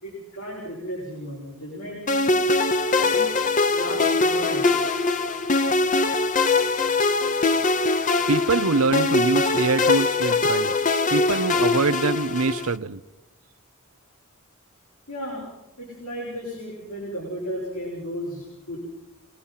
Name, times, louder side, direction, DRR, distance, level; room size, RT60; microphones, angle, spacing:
voice 1, 0.0-2.4 2.9-3.3 3.7-4.7 15.1-15.4 15.8-18.8, equal, 80° left, -4 dB, 6.7 m, -34 dB
sound 1, 2.1-12.7, left 3 dB, 40° left, 0.9 m, -22 dB
voice 2, 8.3-10.7 11.1-13.0, right 4 dB, 85° right, 11 dB, 0.7 m, -24 dB
25.5 x 19.0 x 5.7 m, 0.97 s
head